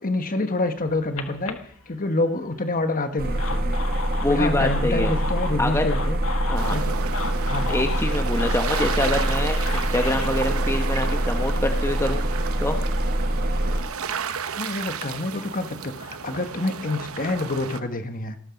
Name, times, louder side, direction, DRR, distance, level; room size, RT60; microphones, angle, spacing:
voice 1, 0.0-1.6 1.9-3.8 4.3-6.2 6.7-6.9 7.5-7.8 14.6-18.4, left 2 dB, 40° left, 8 dB, 1.3 m, -27 dB
sound 1, 0.8-2.4 3.1-10.3, left 5 dB, 65° left, 1.6 m, -35 dB
sound 2, 3.2-13.8, right 1 dB, 45° right, 1.6 m, -25 dB
voice 2, 4.2-5.1 5.6-5.9 6.5-6.8 7.7-12.2 12.6-12.8, left 1 dB, 10° left, 5 dB, 1.1 m, -25 dB
sound 3, 6.5-17.8, right 6 dB, 70° right, 0.9 m, -33 dB
19.0 x 13.0 x 5.2 m, 0.66 s
head